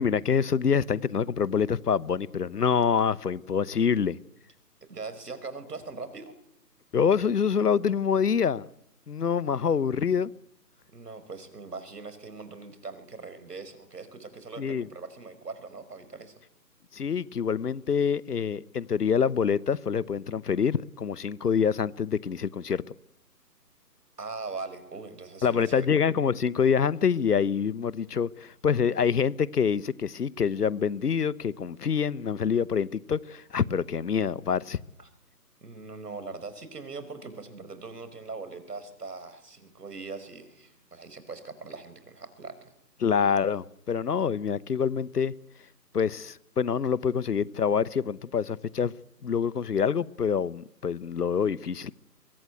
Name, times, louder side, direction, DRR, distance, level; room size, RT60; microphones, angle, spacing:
voice 1, 0.0-4.2 6.9-8.7 9.1-10.3 14.6-14.9 16.9-22.8 25.4-34.8 43.0-45.3 45.9-48.9 49.2-51.9, left 7 dB, 70° left, 1.0 m, -26 dB
voice 2, 4.9-6.3 10.9-16.3 24.2-25.9 35.0-35.1 35.6-42.7, right 4 dB, 70° right, 5.3 m, -41 dB
23.0 x 17.0 x 9.4 m
figure-of-eight pair, 160°, 49 cm